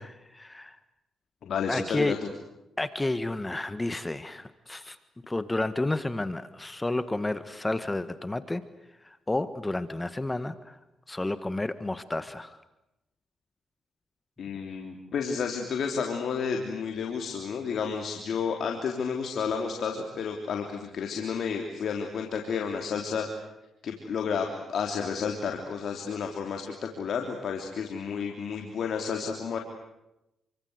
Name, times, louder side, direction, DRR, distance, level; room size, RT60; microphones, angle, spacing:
voice 1, 0.3-0.8 1.7-2.1 2.8-5.0 5.3-8.6 9.0-10.8 11.1-12.6, left 2 dB, 15° left, 13 dB, 1.5 m, -31 dB
voice 2, 1.4-2.3 14.4-23.3 23.8-29.6, left 6 dB, 65° left, 3 dB, 3.3 m, -31 dB
28.5 x 25.0 x 8.0 m, 0.91 s
cardioid pair, 70°, 0 cm